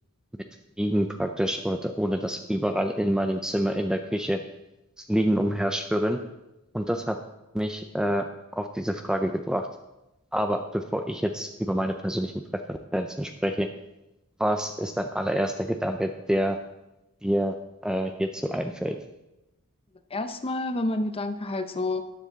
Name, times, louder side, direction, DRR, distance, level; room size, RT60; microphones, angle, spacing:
voice 1, 0.8-4.4 5.1-6.2 6.7-7.2 7.5-8.3 8.6-9.7 10.3-12.3 12.7-13.7 14.4-16.6 17.2-17.6 17.8-19.0, equal, 5° right, 6 dB, 0.4 m, -27 dB
voice 2, 20.1-22.0, left 2 dB, 25° left, 9 dB, 0.8 m, -29 dB
13.0 x 9.9 x 4.0 m, 0.96 s
head